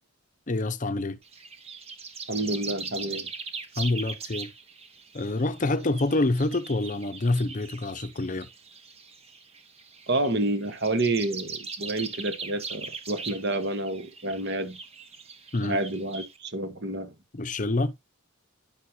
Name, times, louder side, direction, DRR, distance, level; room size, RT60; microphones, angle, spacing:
voice 1, 0.5-1.2 3.8-4.5 5.1-8.5 15.5-15.8 17.3-17.9, left 2 dB, 35° left, 0.7 m, -27 dB
sound 1, 1.2-16.4, right 5 dB, 25° right, 1.0 m, -40 dB
voice 2, 2.3-3.3 10.1-14.8 15.6-17.1, right 2 dB, 50° right, 1.2 m, -29 dB
10.5 x 6.4 x 2.7 m
head